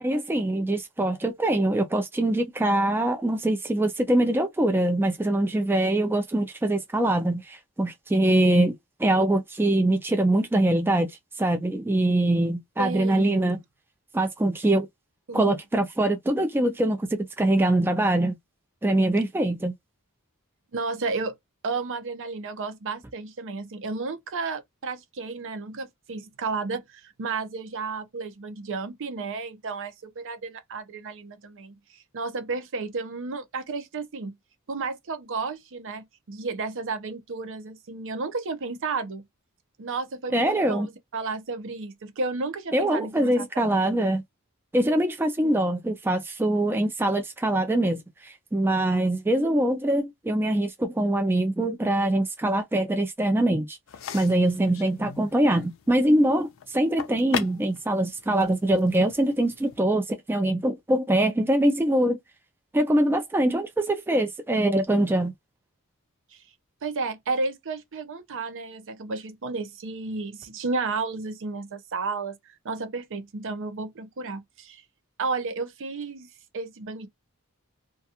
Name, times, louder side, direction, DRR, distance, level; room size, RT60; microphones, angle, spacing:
voice 1, 0.0-8.7 9.0-11.1 11.4-13.6 14.1-14.9 15.3-18.4 18.8-19.7 40.3-40.9 42.7-44.2 44.7-53.8 54.1-62.2 62.7-65.3, right 1 dB, 10° right, 0.3 m, -23 dB
voice 2, 12.8-13.4 15.3-15.5 20.7-21.3 21.6-34.3 34.7-39.2 39.8-43.8 45.4-45.6 66.3-66.4 66.8-72.4 72.6-74.8 75.2-76.3 76.5-77.1, right 4 dB, 60° right, 0.6 m, -32 dB
sound 1, 53.9-59.8, left 7 dB, 65° left, 0.5 m, -39 dB
2.3 x 2.3 x 2.7 m
head